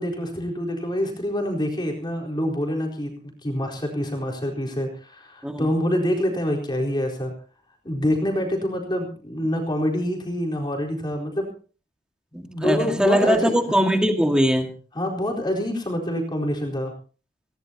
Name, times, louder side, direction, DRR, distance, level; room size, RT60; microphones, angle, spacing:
voice 1, 0.0-3.1 3.4-7.3 7.8-11.5 12.5-13.6 14.9-16.9, equal, 25° left, 0 dB, 4.2 m, -26 dB
voice 2, 12.3-14.7, equal, 5° right, 4 dB, 1.9 m, -21 dB
21.0 x 18.5 x 2.9 m, 0.40 s
head